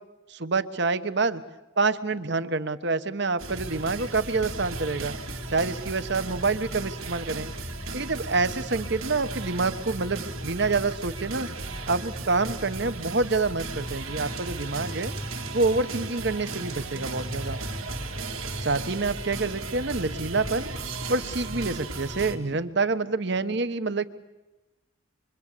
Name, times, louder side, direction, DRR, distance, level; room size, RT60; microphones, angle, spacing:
voice 1, 0.3-1.4 1.8-5.1 5.5-7.5 7.9-11.5 11.9-15.1 15.5-17.6 18.6-20.7 21.1-24.1, right 3 dB, 55° right, 12 dB, 1.1 m, -27 dB
sound 1, 3.4-22.4, right 2 dB, 90° right, 2.8 m, -35 dB
26.0 x 24.0 x 8.4 m, 1.1 s
head